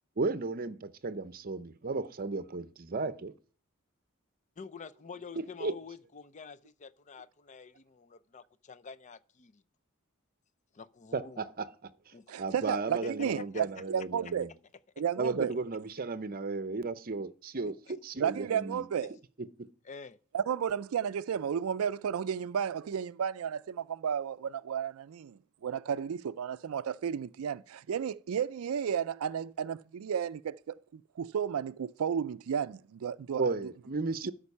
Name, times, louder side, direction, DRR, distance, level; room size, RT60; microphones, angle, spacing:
voice 1, 0.2-2.6 2.9-3.3 5.3-5.7 11.1-11.7 12.1-14.5 15.2-18.9 33.4-34.3, right 3 dB, 45° right, 0.7 m, -34 dB
voice 2, 4.6-9.6 10.8-11.4 12.1-12.4 13.0-13.1 19.0-19.1 19.9-20.2, left 5 dB, 35° left, 0.5 m, -48 dB
voice 3, 12.3-14.5 15.0-15.5 18.2-19.2 20.3-33.5 34.2-34.3, right 8 dB, 80° right, 0.4 m, -33 dB
13.0 x 5.3 x 5.4 m
head